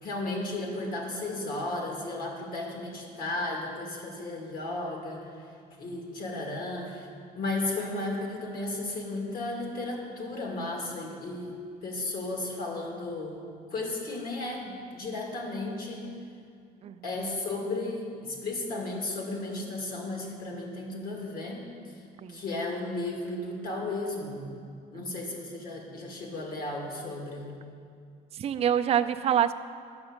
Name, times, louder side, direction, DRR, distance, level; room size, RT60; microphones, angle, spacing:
voice 1, 0.0-5.4 5.8-7.1 7.3-11.5 11.8-13.4 13.7-16.1 17.0-21.7 22.3-24.5 24.9-27.5, left 2 dB, 60° left, 0 dB, 2.3 m, -34 dB
voice 2, 28.3-29.5, right 9 dB, 35° right, 8 dB, 0.4 m, -26 dB
9.6 x 7.1 x 6.5 m, 2.3 s
cardioid pair, 110°, 17 cm